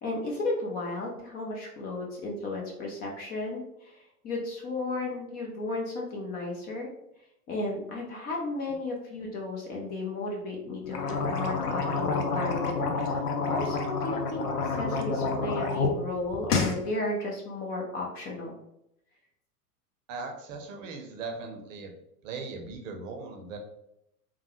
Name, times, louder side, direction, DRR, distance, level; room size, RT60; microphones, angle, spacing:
voice 1, 0.0-6.9 7.5-14.5 14.8-18.5, left 2 dB, 20° left, -1 dB, 0.4 m, -34 dB
sound 1, 10.8-15.9 16.2-16.8, left 4 dB, 75° left, 0.7 m, -29 dB
voice 2, 20.1-21.9 22.2-23.6, right 4 dB, 55° right, 3 dB, 0.7 m, -39 dB
3.2 x 2.1 x 2.9 m, 0.81 s
figure-of-eight pair, 95°, 46 cm